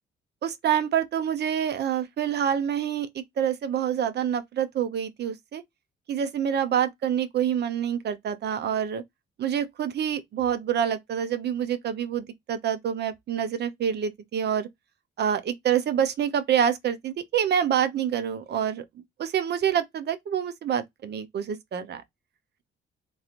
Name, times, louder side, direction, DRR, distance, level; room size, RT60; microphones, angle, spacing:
voice 1, 0.4-5.6 6.1-9.0 9.4-14.7 15.2-18.8 19.2-22.0, right 9 dB, 55° right, 0.7 m, -27 dB
3.1 x 2.6 x 2.8 m
cardioid pair, 90°, 20 cm